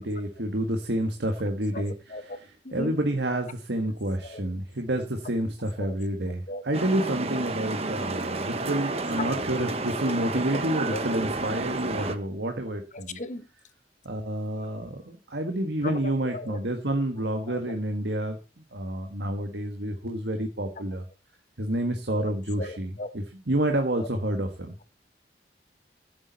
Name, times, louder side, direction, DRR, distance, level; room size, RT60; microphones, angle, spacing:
voice 1, 0.0-1.9 2.7-13.2 14.0-18.4 18.7-21.0 21.6-24.8, right 1 dB, 75° right, 1.6 m, -29 dB
sound 1, 6.7-12.2, right 2 dB, 35° right, 1.2 m, -31 dB
voice 2, 10.5-11.1 12.9-13.5 14.6-14.7 15.8-16.6 17.5-17.8 22.1-22.2 22.6-23.1 24.0-24.1, left 2 dB, 45° left, 1.1 m, -36 dB
15.0 x 8.7 x 4.1 m
head